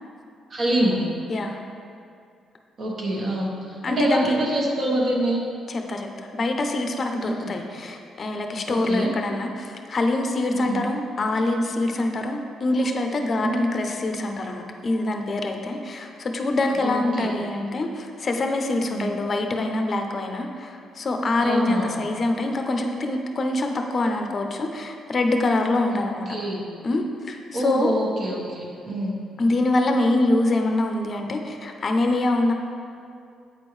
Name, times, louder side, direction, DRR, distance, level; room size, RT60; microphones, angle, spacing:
voice 1, 0.5-1.0 2.8-5.4 7.2-7.6 8.7-9.1 10.5-10.8 13.4-13.6 16.8-17.3 18.9-19.2 21.4-22.0 25.9-26.6 27.5-29.2, right 1 dB, 50° right, -3 dB, 1.3 m, -26 dB
voice 2, 1.3-1.6 3.8-4.4 5.7-26.3 26.8-27.9 29.4-32.5, left 2 dB, 40° left, 4 dB, 0.6 m, -25 dB
7.8 x 4.4 x 3.2 m, 2.3 s
cardioid pair, 90°, 0 cm